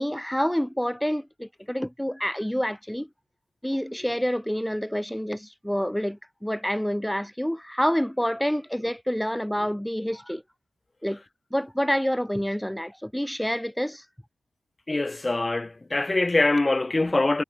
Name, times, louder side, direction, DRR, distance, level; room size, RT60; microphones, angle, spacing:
voice 1, 0.0-3.1 3.6-10.4 11.0-11.2 11.5-14.1, equal, 5° left, 2.0 m, -28 dB
voice 2, 14.9-17.4, left 2 dB, 20° left, 2.7 m, -23 dB
wide cardioid pair, 175°, 0 cm